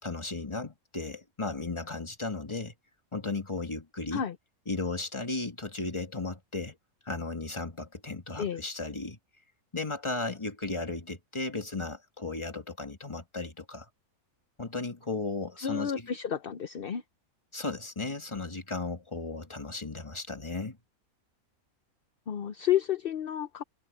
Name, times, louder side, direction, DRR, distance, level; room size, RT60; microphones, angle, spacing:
voice 1, 0.0-2.7 3.1-4.2 4.7-6.8 7.1-9.2 9.7-13.9 14.6-16.1 17.5-20.8, left 3 dB, 20° left, 1.9 m, -35 dB
voice 2, 15.6-17.0 22.3-23.6, left 9 dB, 50° left, 0.8 m, -30 dB
omnidirectional pair, 1.6 m